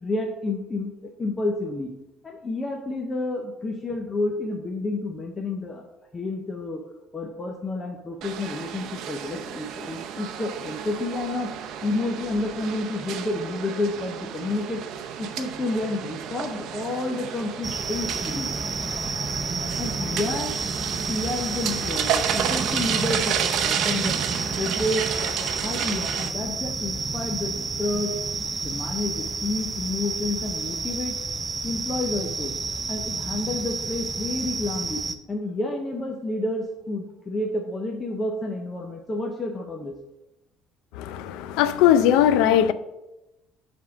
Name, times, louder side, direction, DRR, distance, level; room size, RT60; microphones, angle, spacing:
voice 1, 0.0-1.9 2.2-5.9 6.1-6.8 7.1-11.5 11.8-14.8 15.2-18.5 19.8-20.6 21.1-24.2 24.5-28.1 28.6-31.2 31.6-32.5 32.9-40.0, left 2 dB, 20° left, 0.7 m, -30 dB
sound 1, 8.2-26.3, right 8 dB, 60° right, 0.6 m, -31 dB
sound 2, 17.6-35.2, right 4 dB, 20° right, 0.4 m, -30 dB
voice 2, 41.0-42.7, left 10 dB, 85° left, 0.4 m, -19 dB
7.3 x 3.6 x 6.3 m
cardioid pair, 145°, 0 cm